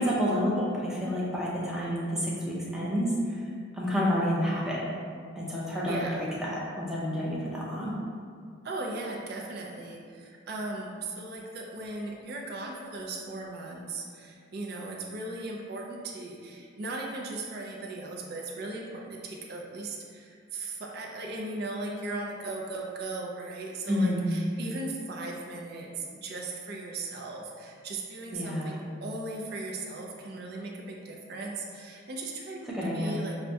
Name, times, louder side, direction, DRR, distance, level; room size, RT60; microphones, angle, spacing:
voice 1, 0.0-3.1 3.8-4.8 5.4-8.0 23.9-24.3 28.3-28.8 32.7-33.2, equal, 5° right, -6 dB, 0.6 m, -29 dB
voice 2, 5.9-6.2 8.6-33.4, right 2 dB, 50° right, -1 dB, 0.5 m, -37 dB
5.7 x 2.2 x 2.7 m, 2.2 s
head